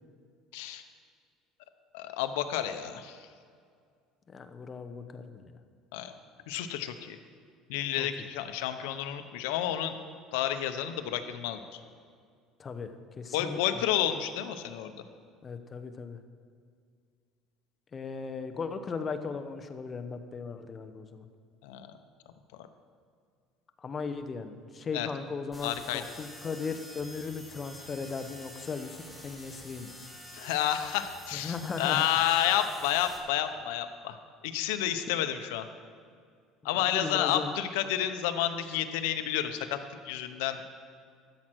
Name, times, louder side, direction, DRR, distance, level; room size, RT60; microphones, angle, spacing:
voice 1, 0.5-0.8 1.9-3.3 5.9-6.1 6.5-7.2 7.7-10.0 10.3-11.8 13.3-14.9 21.6-21.9 22.5-22.7 24.9-25.1 25.6-26.0 30.3-34.2 34.4-35.6 36.6-40.6, left 11 dB, 90° left, 9 dB, 0.8 m, -30 dB
voice 2, 4.3-5.5 8.0-8.1 12.6-13.6 15.4-16.2 17.9-21.2 23.8-29.9 31.3-32.4 36.7-37.5, left 5 dB, 30° left, 8 dB, 0.8 m, -37 dB
sound 1, 25.5-33.2, left 1 dB, 5° left, 2.0 m, -48 dB
13.0 x 7.7 x 6.2 m, 2.1 s
cardioid pair, 125°, 0 cm